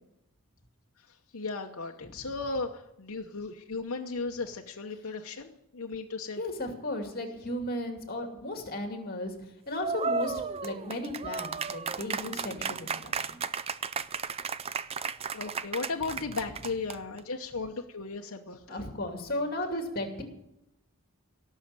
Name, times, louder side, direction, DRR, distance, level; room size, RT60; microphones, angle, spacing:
voice 1, 1.3-6.4 15.3-18.8, left 3 dB, 65° left, 1 dB, 0.9 m, -36 dB
voice 2, 6.4-13.4 18.7-20.2, left 1 dB, 40° left, 3 dB, 2.5 m, -35 dB
sound 1, 9.8-17.2, right 5 dB, 25° right, 0.4 m, -34 dB
17.5 x 6.5 x 8.8 m, 0.85 s
head